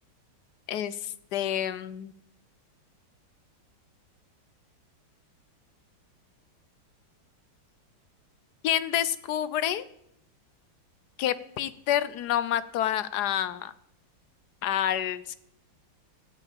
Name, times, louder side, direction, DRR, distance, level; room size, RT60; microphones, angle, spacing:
voice 1, 0.7-2.1 8.6-9.8 11.2-13.7 14.6-15.4, left 11 dB, 65° left, 15 dB, 1.1 m, -28 dB
13.5 x 7.3 x 8.8 m, 0.76 s
omnidirectional pair, 2.1 m